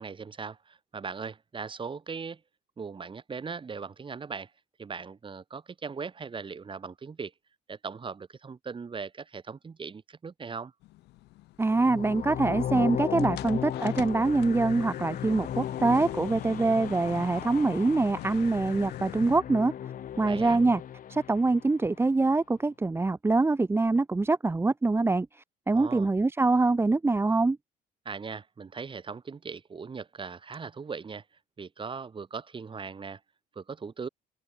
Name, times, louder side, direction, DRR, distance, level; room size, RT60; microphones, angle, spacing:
voice 1, 0.0-2.4 2.8-4.5 4.8-7.3 7.7-10.7 20.2-20.6 25.7-26.1 28.0-31.2 31.6-33.2 33.5-34.1, right 5 dB, 30° right, 6.2 m, -39 dB
sound 1, 10.8-19.4, left 18 dB, 85° left, 5.4 m, -44 dB
voice 2, 11.6-19.7 20.2-20.8 21.1-27.6, right 3 dB, 15° right, 1.0 m, -25 dB
sound 2, 11.7-21.8, left 10 dB, 55° left, 4.4 m, -36 dB
open air
cardioid pair, 110°, 17 cm